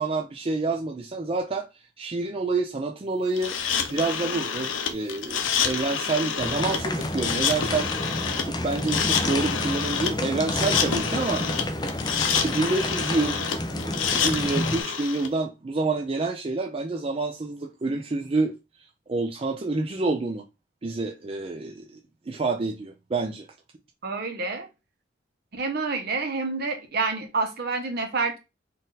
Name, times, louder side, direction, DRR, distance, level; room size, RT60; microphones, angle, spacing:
voice 1, 0.0-3.6 3.9-7.9 8.5-11.7 12.3-13.4 13.9-18.5 19.1-20.4 20.8-22.0 22.3-23.4, right 3 dB, 30° right, 0.4 m, -28 dB
sound 1, 3.4-15.3, left 7 dB, 80° left, 0.7 m, -28 dB
sound 2, 6.4-14.8, left 1 dB, 20° left, 0.5 m, -30 dB
voice 2, 24.0-24.7 25.5-28.4, right 4 dB, 55° right, 0.9 m, -28 dB
4.0 x 2.6 x 3.9 m
head